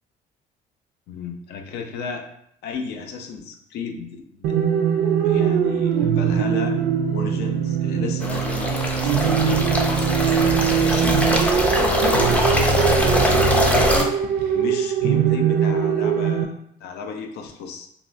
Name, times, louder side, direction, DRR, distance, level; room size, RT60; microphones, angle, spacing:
voice 1, 1.1-2.3 2.6-4.9 5.2-6.8 7.1-9.6 10.2-14.1 14.5-17.9, left 6 dB, 75° left, 4 dB, 0.5 m, -33 dB
sound 1, 4.4-16.4, right 8 dB, 70° right, 0.4 m, -21 dB
sound 2, 8.2-14.0, left 1 dB, 10° left, 0.4 m, -22 dB
3.5 x 2.3 x 2.5 m, 0.70 s
cardioid pair, 110°, 17 cm